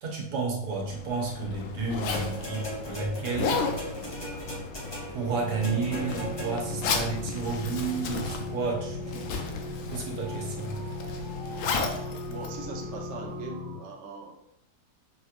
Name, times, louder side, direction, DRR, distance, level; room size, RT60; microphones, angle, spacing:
voice 1, 0.0-3.7 5.1-9.5 9.9-10.8, right 4 dB, 80° right, -1 dB, 1.5 m, -32 dB
Zipper (clothing), 0.7-13.4, left 4 dB, 70° left, 0.9 m, -34 dB
sound 1, 2.1-6.9 7.8-7.9, equal, 35° left, 0.4 m, -38 dB
sound 2, 5.3-13.8, left 2 dB, 35° right, 0.4 m, -38 dB
voice 2, 12.2-14.3, right 4 dB, 60° right, 0 dB, 0.8 m, -40 dB
5.1 x 3.0 x 2.4 m, 0.75 s
omnidirectional pair, 1.7 m